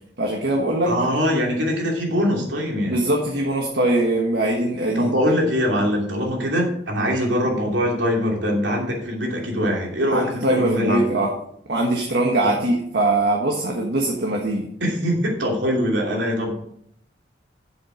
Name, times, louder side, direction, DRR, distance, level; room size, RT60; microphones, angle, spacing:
voice 1, 0.2-1.0 2.8-5.1 7.1-7.3 10.1-11.3 11.7-14.7, right 2 dB, 65° right, 0 dB, 1.4 m, -22 dB
voice 2, 0.9-3.0 4.9-11.0 12.4-12.5 14.8-16.5, equal, 80° right, 0 dB, 2.7 m, -22 dB
7.7 x 7.4 x 5.0 m, 0.72 s
head